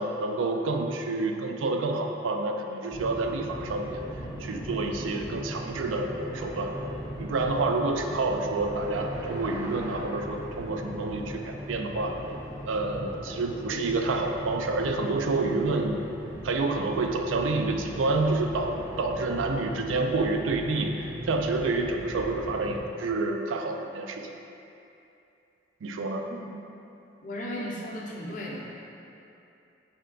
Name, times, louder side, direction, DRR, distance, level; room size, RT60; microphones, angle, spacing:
voice 1, 0.0-4.0 4.4-6.7 7.2-12.2 12.7-16.0 16.4-24.3 25.8-26.2, right 3 dB, 85° right, 4 dB, 0.4 m, -28 dB
sound 1, 2.9-22.8, equal, 15° right, 0.5 m, -39 dB
voice 2, 27.2-28.7, left 1 dB, 40° left, -4 dB, 0.6 m, -35 dB
4.3 x 3.3 x 3.8 m, 2.7 s
head